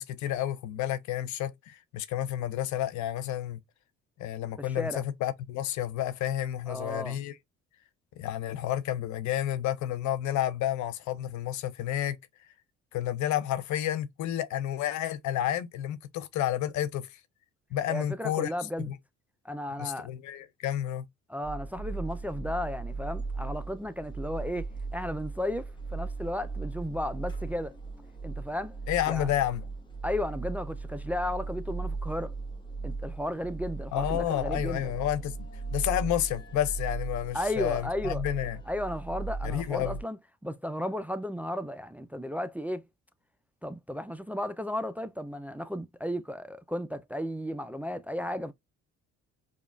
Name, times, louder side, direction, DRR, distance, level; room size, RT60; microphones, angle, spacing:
voice 1, 0.0-3.6 4.2-7.3 8.2-12.2 12.9-17.2 17.7-18.5 18.8-18.9 19.8-21.1 28.9-29.7 33.9-38.6 39.4-40.0, left 12 dB, 75° left, 0.6 m, -30 dB
voice 2, 6.7-7.2 17.9-18.9 19.4-20.1 21.3-27.7 28.2-28.7 29.1-29.3 30.0-32.3 32.8-34.9 37.3-38.2 38.7-42.9 43.6-48.5, left 1 dB, 5° right, 0.3 m, -34 dB
sound 1, 21.4-40.0, right 4 dB, 15° left, 1.1 m, -37 dB
5.0 x 2.3 x 2.2 m
supercardioid pair, 75°, 29 cm